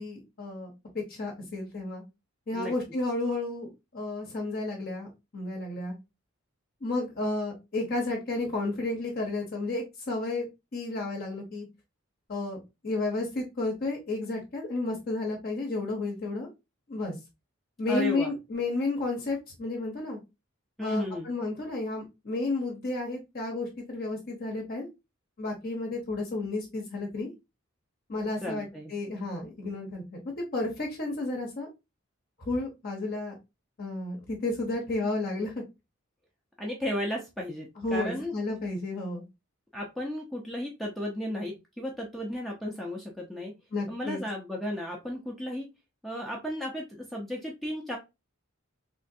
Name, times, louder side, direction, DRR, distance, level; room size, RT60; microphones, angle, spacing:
voice 1, 0.0-2.0 2.5-5.9 6.8-10.5 10.7-11.7 12.3-12.6 12.8-16.5 16.9-17.1 17.8-20.2 20.8-24.9 25.4-27.3 28.1-30.2 30.5-31.7 32.4-33.3 33.8-35.6 37.8-39.2 43.7-44.2, left 2 dB, 45° left, -1 dB, 0.8 m, -32 dB
voice 2, 17.9-18.3 20.8-21.3 28.4-28.9 36.6-38.3 39.7-43.5 43.9-45.7 46.0-48.0, equal, ahead, -1 dB, 0.5 m, -34 dB
3.4 x 2.4 x 2.6 m, 0.24 s
head